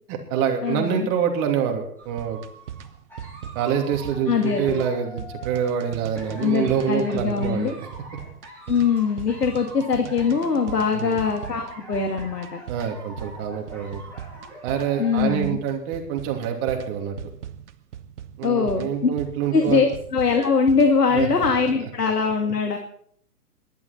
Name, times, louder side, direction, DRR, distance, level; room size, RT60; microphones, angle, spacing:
voice 1, 0.1-2.4 3.5-7.9 10.9-11.2 12.7-14.0 14.6-17.1 18.4-19.8 21.1-21.3 21.6-21.7, right 8 dB, 30° right, 3 dB, 2.9 m, -26 dB
voice 2, 0.6-1.1 4.3-4.8 6.4-7.7 8.7-12.6 15.0-15.6 18.4-19.1 19.5-22.8, left 5 dB, 85° left, 4 dB, 2.2 m, -22 dB
sound 1, 2.0-15.4, right 1 dB, 5° left, 7.4 m, -44 dB
sound 2, 2.1-21.8, right 9 dB, 50° right, 1.1 m, -40 dB
19.0 x 11.5 x 4.4 m, 0.65 s
hypercardioid pair, 135°, 46 cm